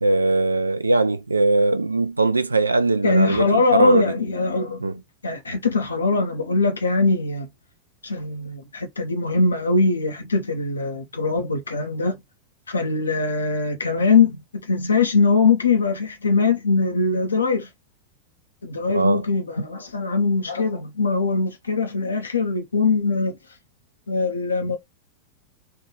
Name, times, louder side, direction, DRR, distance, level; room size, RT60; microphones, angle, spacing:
voice 1, 0.0-4.1 4.8-4.9 18.9-19.2, right 2 dB, 80° right, 0.3 m, -20 dB
voice 2, 3.0-7.5 8.0-12.2 12.7-17.7 18.6-23.4 24.1-24.8, left 4 dB, 75° left, 0.6 m, -22 dB
3.2 x 2.3 x 2.9 m
figure-of-eight pair, 90°, 0 cm